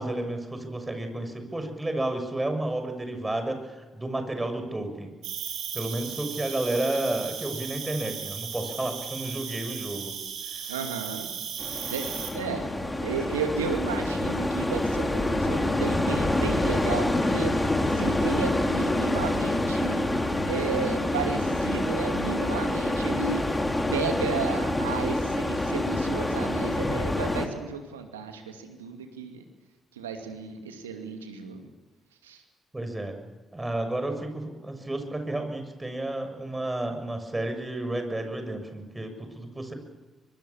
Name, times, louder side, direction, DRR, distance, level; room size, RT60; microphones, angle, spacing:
voice 1, 0.0-5.1 5.7-10.1 10.5-10.8 32.7-33.1 33.5-39.7, right 1 dB, 15° right, 6 dB, 6.9 m, -31 dB
Cricket, 5.2-12.3, right 8 dB, 70° right, 5.3 m, -36 dB
voice 2, 10.7-11.3 11.9-12.7 13.0-17.5 17.9-20.0 20.5-23.6 23.9-29.4 30.0-31.7 32.2-32.4, right 5 dB, 90° right, 5 dB, 2.4 m, -33 dB
sound 1, 11.6-27.5, left 1 dB, 15° left, 4.1 m, -27 dB
23.5 x 23.5 x 7.2 m, 1.2 s
hypercardioid pair, 45°, 0 cm